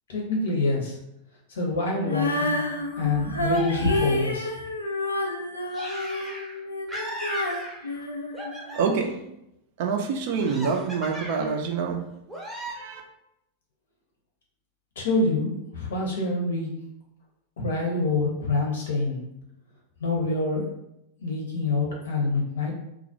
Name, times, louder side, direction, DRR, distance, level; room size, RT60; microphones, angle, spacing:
voice 1, 0.1-1.0 1.5-2.6 3.0-4.5 15.0-16.7 17.6-19.2 20.0-20.7 21.2-22.7, left 2 dB, 65° left, -1 dB, 0.7 m, -26 dB
Female singing, 2.0-9.1, left 2 dB, 80° left, 0.3 m, -29 dB
sound 1, 3.5-4.5 5.7-6.6 6.9-8.0 8.3-9.1 10.4-11.6 12.3-12.7, equal, ahead, 0.7 m, -37 dB
voice 2, 8.7-9.1 9.8-12.1 12.8-13.0, right 5 dB, 50° right, 3 dB, 0.4 m, -26 dB
2.3 x 2.0 x 2.8 m, 0.82 s
figure-of-eight pair, 90°, 0 cm